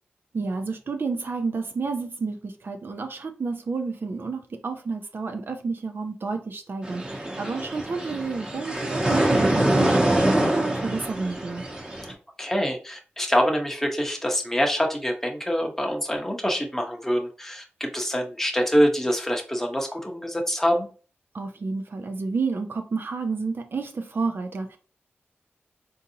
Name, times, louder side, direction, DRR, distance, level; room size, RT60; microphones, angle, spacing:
voice 1, 0.3-11.6 21.3-24.8, right 4 dB, 60° right, 5 dB, 0.5 m, -30 dB
sound 1, 6.8-12.1, right 1 dB, 20° right, 0.9 m, -24 dB
voice 2, 12.4-20.9, equal, 10° left, 2 dB, 0.8 m, -25 dB
3.8 x 2.7 x 2.7 m, 0.38 s
cardioid pair, 60°, 4 cm